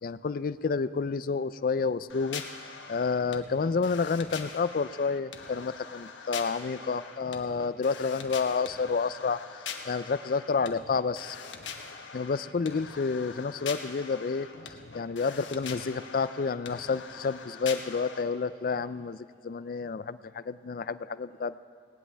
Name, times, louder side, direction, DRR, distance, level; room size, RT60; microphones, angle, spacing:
voice 1, 0.0-2.4 2.9-9.4 9.9-11.4 12.1-21.6, left 5 dB, 50° left, 15 dB, 0.4 m, -30 dB
sound 1, 2.1-18.2, left 5 dB, 85° left, 1.2 m, -43 dB
19.5 x 18.0 x 3.4 m, 2.6 s
head